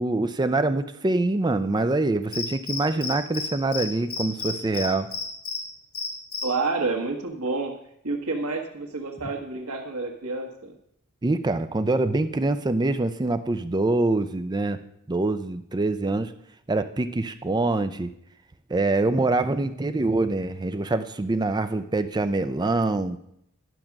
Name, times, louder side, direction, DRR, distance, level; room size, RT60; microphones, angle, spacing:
voice 1, 0.0-5.1 11.2-14.8 15.1-16.3 16.7-18.1 18.7-23.2, right 2 dB, 20° right, 10 dB, 0.4 m, -25 dB
Cricket, 2.3-3.5 3.7-3.8 4.1-5.6 5.9-6.4, left 5 dB, 75° left, 2.0 m, -30 dB
voice 2, 6.4-7.7 8.0-10.8, right 3 dB, 85° right, 3 dB, 1.4 m, -29 dB
11.0 x 6.3 x 5.9 m, 0.72 s
head